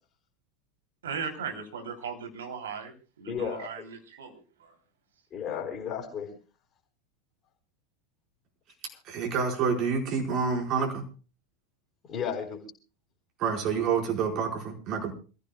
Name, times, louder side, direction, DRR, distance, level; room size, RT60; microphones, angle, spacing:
voice 1, 1.0-4.7, right 6 dB, 75° right, 4 dB, 3.1 m, -38 dB
voice 2, 3.3-3.8 5.3-6.3 12.1-12.6, left 7 dB, 35° left, 0 dB, 4.1 m, -33 dB
voice 3, 9.0-11.0 13.4-15.1, right 6 dB, 45° right, 2 dB, 4.7 m, -28 dB
28.0 x 15.0 x 2.3 m, 0.35 s
figure-of-eight pair, 85°, 0 cm